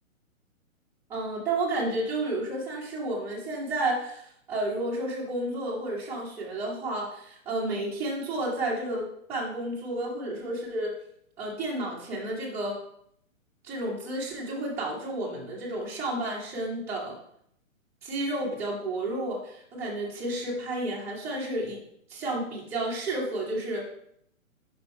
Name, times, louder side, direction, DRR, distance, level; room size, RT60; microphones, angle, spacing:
voice 1, 1.1-10.9 11.4-12.8 13.6-17.2 18.0-21.8 22.1-23.9, right 1 dB, 5° right, -7 dB, 1.1 m, -31 dB
5.4 x 5.1 x 5.6 m, 0.70 s
hypercardioid pair, 165°, 41 cm